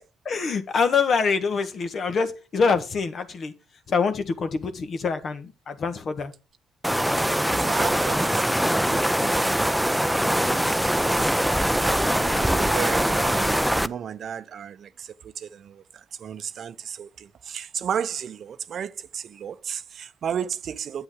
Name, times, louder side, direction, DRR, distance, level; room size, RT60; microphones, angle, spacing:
voice 1, 0.2-3.5 3.9-6.3, left 5 dB, 55° left, 1.4 m, -25 dB
sound 1, 6.8-13.9, equal, ahead, 0.5 m, -22 dB
voice 2, 7.5-21.0, right 8 dB, 60° right, 0.6 m, -34 dB
8.1 x 7.9 x 3.6 m
hypercardioid pair, 55°, 0 cm